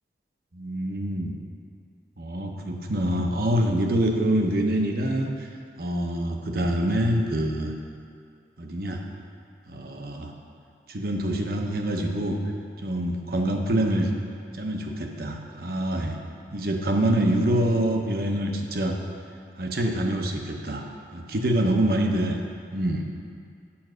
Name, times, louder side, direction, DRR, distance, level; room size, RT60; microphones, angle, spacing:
voice 1, 0.5-1.4 2.2-5.5 5.8-7.7 8.6-9.0 9.7-10.3 10.9-12.4 12.8-14.1 14.5-16.2 16.5-19.0 19.6-20.8 21.1-22.4 22.7-23.0, right 1 dB, 55° right, 2 dB, 0.8 m, -25 dB
7.1 x 5.3 x 6.2 m, 2.3 s
head